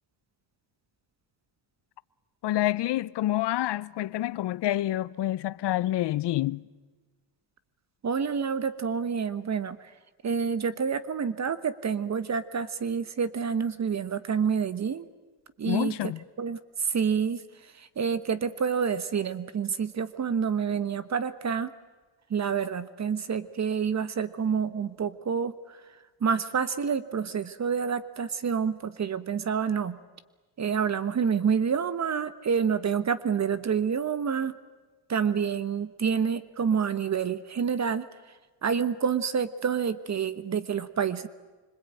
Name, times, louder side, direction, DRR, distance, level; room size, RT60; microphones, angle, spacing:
voice 1, 2.4-6.7 15.7-16.2, left 14 dB, 60° left, 0.8 m, -28 dB
voice 2, 8.0-9.8 10.2-15.1 15.6-16.0 16.4-17.4 17.8-21.7 22.3-25.8 26.2-30.0 30.6-34.5 35.1-38.0 38.6-41.3, right 6 dB, 35° right, 1.2 m, -28 dB
26.0 x 25.5 x 9.1 m
cardioid pair, 115°, 47 cm